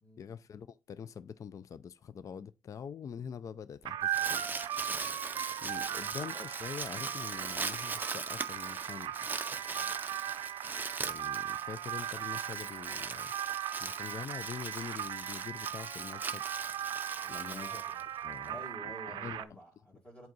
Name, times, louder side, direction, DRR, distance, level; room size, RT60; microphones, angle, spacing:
voice 1, 0.2-4.4 5.6-9.1 11.0-13.3 13.8-16.4 17.3-17.8 18.2-18.6 19.1-19.4, left 7 dB, 45° left, 0.3 m, -44 dB
Crumpling crinkling, 3.8-18.5, right 4 dB, 25° right, 0.5 m, -40 dB
sound 1, 3.9-19.4, right 11 dB, 90° right, 0.4 m, -38 dB
voice 2, 17.2-18.1 18.5-20.3, equal, 20° left, 2.0 m, -50 dB
7.8 x 4.6 x 3.9 m
cardioid pair, 105°, 8 cm